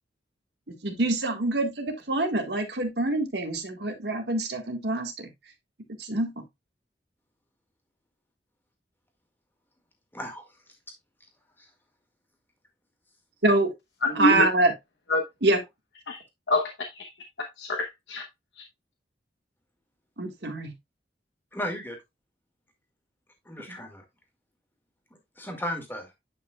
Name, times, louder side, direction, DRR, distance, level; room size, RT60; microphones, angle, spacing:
voice 1, 0.7-5.3 6.0-6.4 13.4-13.7 14.1-14.7 15.4-15.6 20.2-20.7 23.7-23.8, right 2 dB, 65° right, 1.6 m, -25 dB
voice 2, 10.1-10.4 21.5-22.0 23.5-24.0 25.4-26.1, equal, 10° left, 1.9 m, -34 dB
voice 3, 14.0-14.5 15.1-15.2 16.1-16.2 16.5-17.1 17.4-18.2, left 2 dB, 75° left, 0.9 m, -26 dB
9.4 x 5.4 x 2.3 m
head